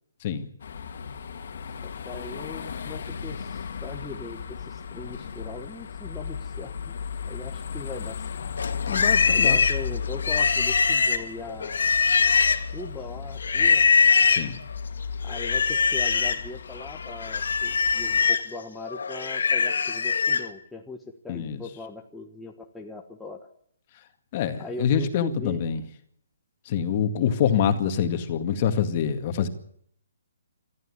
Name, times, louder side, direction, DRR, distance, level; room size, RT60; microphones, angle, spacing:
sound 1, 0.6-18.3, left 6 dB, 60° left, 2.2 m, -36 dB
voice 1, 1.8-6.9 7.3-8.3 9.3-11.8 12.7-13.8 15.2-23.5 24.6-25.6, left 3 dB, 5° left, 0 dB, 1.3 m, -40 dB
Livestock farm animals working animals, 8.6-12.8 13.4-14.5 15.3-16.4 16.8-20.5, left 5 dB, 75° left, 1.9 m, -22 dB
voice 2, 8.9-9.6 14.3-14.6 21.3-21.6 24.3-25.8 26.7-29.5, left 8 dB, 35° left, 8 dB, 2.0 m, -25 dB
22.0 x 14.0 x 9.7 m, 0.68 s
hypercardioid pair, 160°, 0 cm